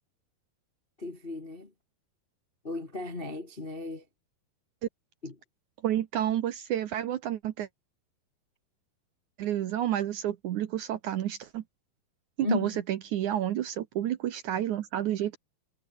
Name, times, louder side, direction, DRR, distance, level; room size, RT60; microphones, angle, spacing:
voice 1, 1.0-1.7 2.6-4.0 5.2-5.3 12.4-12.7, left 2 dB, 30° left, 1.1 m, -34 dB
voice 2, 5.8-7.7 9.4-11.6 12.4-15.4, right 11 dB, 65° right, 2.1 m, -30 dB
omnidirectional pair, 4.4 m